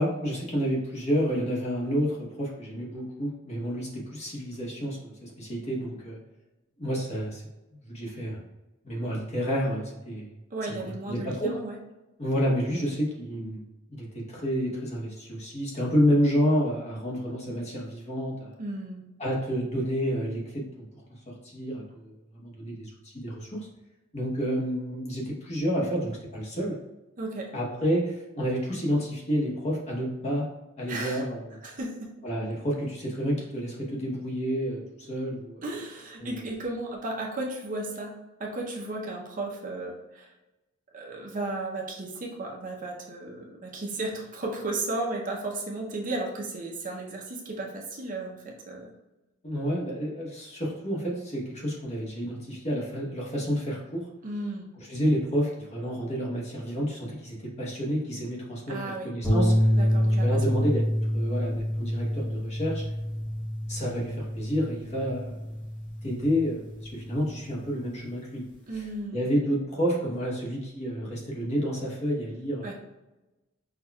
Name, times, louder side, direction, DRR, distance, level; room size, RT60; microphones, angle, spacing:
voice 1, 0.0-6.2 6.8-7.4 7.8-8.4 8.8-10.3 11.1-11.5 12.2-13.6 13.9-18.5 19.2-20.9 21.3-23.6 24.1-26.8 27.5-30.5 30.8-31.4 32.2-34.8 35.1-35.6 36.2-36.3 49.4-54.0 54.9-59.5 60.2-60.8 61.1-62.8 63.7-65.4 66.0-68.4 69.1-72.7, equal, 35° left, -3 dB, 0.9 m, -29 dB
voice 2, 10.5-11.8 18.6-19.0 27.2-27.5 30.9-31.2 31.6-32.1 35.6-38.1 38.4-40.3 40.9-48.9 54.2-54.7 58.7-59.1 59.7-60.4 68.7-69.2 72.6-72.7, right 2 dB, 40° right, -1 dB, 0.6 m, -34 dB
sound 1, 59.2-67.6, equal, 10° left, 0.8 m, -27 dB
5.7 x 2.3 x 2.3 m, 1.0 s
head